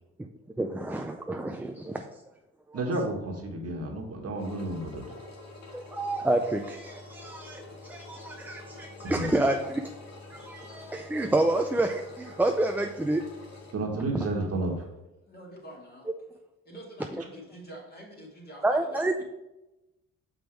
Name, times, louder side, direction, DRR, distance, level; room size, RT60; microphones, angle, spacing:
voice 1, 0.6-2.0 2.7-2.8 5.7-9.8 10.3-13.2 17.1-17.2 18.6-19.2, right 2 dB, 5° right, 5 dB, 0.4 m, -28 dB
voice 2, 2.7-5.0 9.0-9.3 13.7-14.7, right 2 dB, 50° right, 1 dB, 1.6 m, -31 dB
Engine, 4.4-13.7, left 2 dB, 65° left, 2.0 m, -46 dB
voice 3, 15.3-16.1 16.6-19.2, right 1 dB, 30° left, -2 dB, 2.4 m, -46 dB
6.1 x 5.2 x 4.5 m, 0.99 s
cardioid pair, 90°, 30 cm